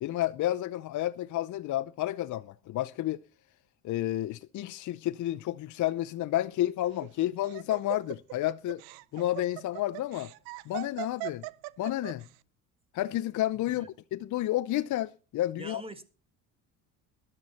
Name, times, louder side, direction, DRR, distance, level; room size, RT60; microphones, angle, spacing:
voice 1, 0.0-3.2 3.8-8.8 9.1-10.3 10.7-11.4 11.8-12.2 12.9-13.9 14.1-15.8, left 14 dB, 55° left, 0.6 m, -30 dB
Laughter, 6.8-12.3, right 21 dB, 90° right, 0.6 m, -40 dB
voice 2, 15.6-16.1, right 2 dB, 15° right, 1.7 m, -43 dB
14.0 x 11.0 x 4.2 m
cardioid pair, 100°, 36 cm